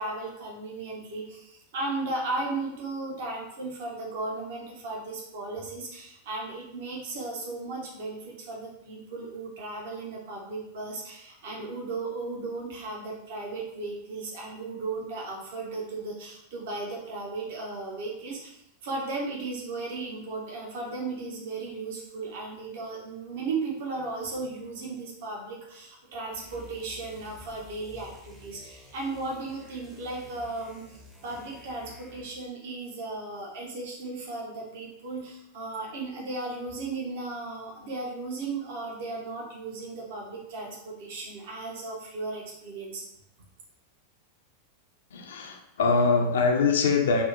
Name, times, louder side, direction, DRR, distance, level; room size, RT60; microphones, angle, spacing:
voice 1, 0.0-43.0, right 3 dB, 55° right, -2 dB, 0.6 m, -36 dB
sound 1, 26.3-32.5, left 2 dB, 5° right, 0.5 m, -51 dB
voice 2, 45.1-47.2, left 4 dB, 60° left, 3 dB, 0.3 m, -23 dB
2.7 x 2.0 x 2.4 m, 0.81 s
figure-of-eight pair, 90°, 0 cm